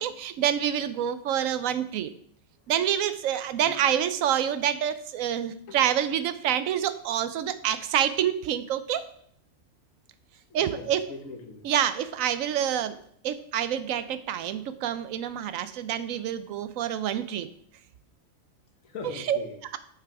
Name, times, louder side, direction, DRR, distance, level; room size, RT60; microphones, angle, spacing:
voice 1, 0.0-2.1 2.7-9.1 10.5-11.1 11.6-13.0 13.2-17.5 19.3-19.4, right 10 dB, 90° right, 12 dB, 1.0 m, -27 dB
voice 2, 10.5-11.6 18.8-19.6, left 4 dB, 80° left, 5 dB, 1.5 m, -41 dB
6.8 x 5.8 x 4.7 m, 0.65 s
omnidirectional pair, 1.4 m